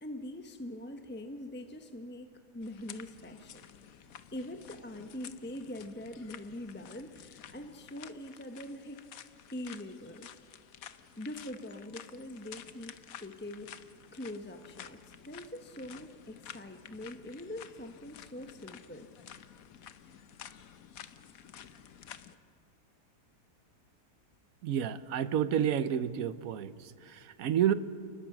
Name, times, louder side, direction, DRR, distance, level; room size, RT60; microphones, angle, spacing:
voice 1, 0.0-3.7 4.3-10.4 11.2-13.7 14.1-19.1, left 1 dB, 10° left, 6 dB, 0.6 m, -43 dB
sound 1, 2.6-22.4, left 9 dB, 60° left, 1.2 m, -51 dB
voice 2, 24.6-27.7, right 9 dB, 60° right, 14 dB, 1.1 m, -30 dB
29.5 x 20.0 x 6.0 m, 2.2 s
omnidirectional pair, 1.8 m